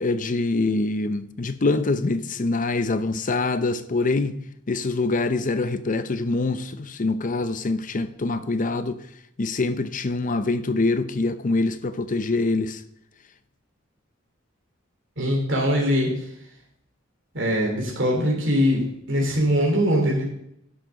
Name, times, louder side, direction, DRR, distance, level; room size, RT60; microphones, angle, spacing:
voice 1, 0.0-4.4 4.7-9.0 9.4-12.8, left 3 dB, 40° left, 0.6 m, -24 dB
voice 2, 15.2-16.1 17.3-20.2, equal, 65° right, 3.1 m, -22 dB
11.5 x 6.3 x 5.8 m
head